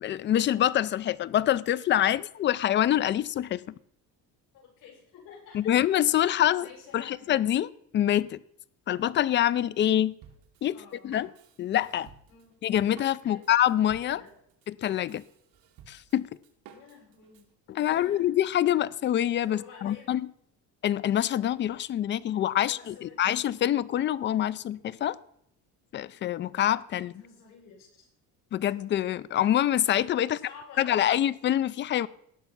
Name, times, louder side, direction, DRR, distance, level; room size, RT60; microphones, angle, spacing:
voice 1, 0.0-3.7 5.5-6.7 6.9-8.4 8.9-10.2 10.6-10.8 11.0-11.3 11.6-12.1 12.6-14.2 14.7-15.2 15.9-16.3 17.7-20.2 20.8-25.2 25.9-27.2 28.5-30.4 30.8-32.1, left 11 dB, 30° left, 0.4 m, -25 dB
voice 2, 4.5-5.7 6.6-7.3 10.7-11.3 12.3-12.5 13.2-13.4 14.0-14.3 16.7-17.4 17.8-18.2 19.5-20.1 22.5-23.2 27.2-28.1 30.2-31.2, left 6 dB, 60° left, 7.2 m, -50 dB
Drum kit, 10.2-17.5, right 8 dB, 65° right, 2.6 m, -54 dB
18.0 x 6.7 x 6.0 m
cardioid pair, 145°, 36 cm